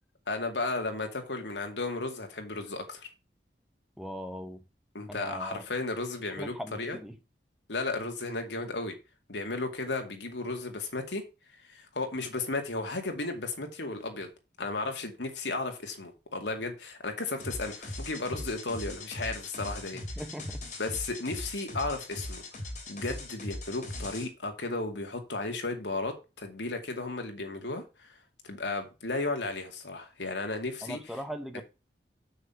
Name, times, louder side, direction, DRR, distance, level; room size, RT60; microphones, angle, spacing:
voice 1, 0.3-3.1 4.9-7.0 7.7-9.0 9.3-11.2 11.7-14.3 14.6-20.0 20.8-22.4 22.9-28.2 28.4-31.0 31.5-31.6, left 3 dB, 85° left, 2.3 m, -34 dB
voice 2, 4.0-4.6 5.1-5.6 6.3-7.2 19.9-20.6 30.8-31.6, equal, ahead, 0.8 m, -40 dB
sound 1, 17.4-24.2, left 1 dB, 45° left, 3.1 m, -39 dB
7.3 x 6.4 x 5.8 m
head